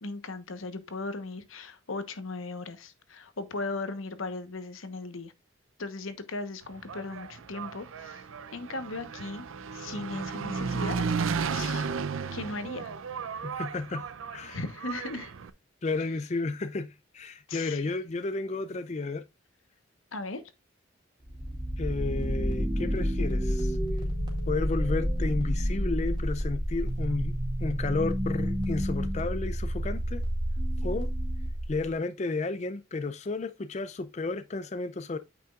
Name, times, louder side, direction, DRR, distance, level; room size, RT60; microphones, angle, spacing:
voice 1, 0.0-5.3 5.8-8.2 8.5-9.5 9.7-11.0 11.5-11.9 12.3-12.9 14.5-15.3 17.5-17.9 20.1-20.4, left 3 dB, 85° left, 1.1 m, -37 dB
Engine, 6.7-15.5, right 5 dB, 80° right, 0.5 m, -34 dB
voice 2, 13.4-14.1 14.3-14.6 15.8-19.2 21.8-23.8 24.5-27.4 27.6-30.2 30.8-31.1 31.7-35.2, left 3 dB, 35° left, 0.4 m, -32 dB
sound 1, 21.2-31.9, equal, 20° right, 2.0 m, -29 dB
8.7 x 6.0 x 2.4 m
head